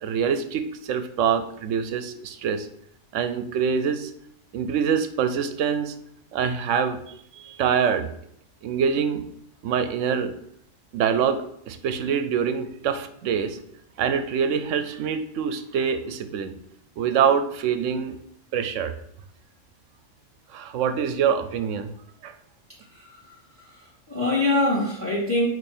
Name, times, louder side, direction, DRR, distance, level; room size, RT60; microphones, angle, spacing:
voice 1, 0.0-2.7 3.1-4.1 4.5-5.9 6.3-8.1 8.6-9.2 9.6-10.3 10.9-13.6 14.0-16.5 17.0-18.2 18.5-18.9 20.5-21.9 22.2-22.3, right 7 dB, 75° right, 10 dB, 0.9 m, -25 dB
voice 2, 22.9-25.5, left 2 dB, 10° left, -6 dB, 2.4 m, -25 dB
8.7 x 3.0 x 4.3 m, 0.71 s
omnidirectional pair, 1.3 m